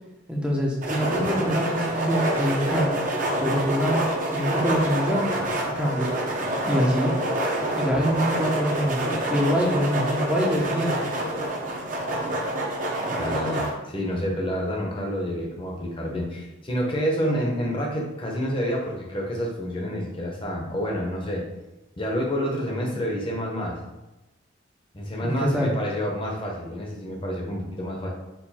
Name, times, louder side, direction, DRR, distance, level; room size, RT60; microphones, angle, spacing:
voice 1, 0.3-3.0 3.4-5.3 5.8-6.1 6.7-7.1 7.7-11.2 25.2-25.7, equal, 5° right, -3 dB, 0.6 m, -25 dB
sound 1, 0.8-13.7, right 1 dB, 40° right, 0.7 m, -27 dB
voice 2, 13.2-21.4 22.0-23.8 24.9-28.1, equal, 25° left, -2 dB, 0.8 m, -28 dB
4.5 x 2.6 x 4.1 m, 1.0 s
head